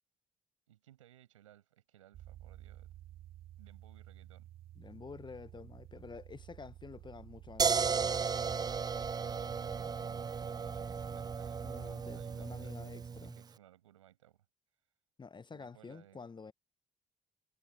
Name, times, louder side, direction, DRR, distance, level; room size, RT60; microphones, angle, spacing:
voice 1, 0.7-3.0 3.6-4.5 9.3-12.9 13.2-14.4 15.5-16.2, right 12 dB, 85° right, 6.8 m, -62 dB
sound 1, 2.1-12.4, right 13 dB, 65° right, 3.2 m, -54 dB
voice 2, 4.8-8.2 11.6-13.3 15.2-16.5, left 5 dB, 30° left, 1.0 m, -49 dB
sound 2, 7.6-13.4, right 6 dB, 25° right, 0.4 m, -35 dB
hypercardioid pair, 45°, 16 cm